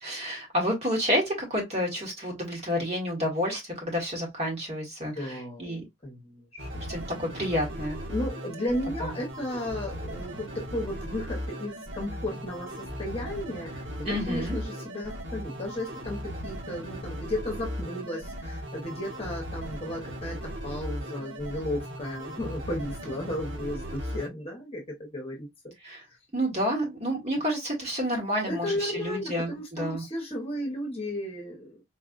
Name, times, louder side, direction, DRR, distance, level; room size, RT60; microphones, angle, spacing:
voice 1, 0.0-5.8 6.9-8.0 9.0-9.1 14.0-14.6 25.8-26.0 26.3-30.0, equal, 30° right, 1.6 m, -29 dB
voice 2, 5.1-6.7 8.1-25.7 28.5-31.8, left 1 dB, 30° left, 1.2 m, -34 dB
sound 1, 6.6-24.3, equal, 60° right, 1.5 m, -37 dB
4.2 x 2.6 x 2.5 m
head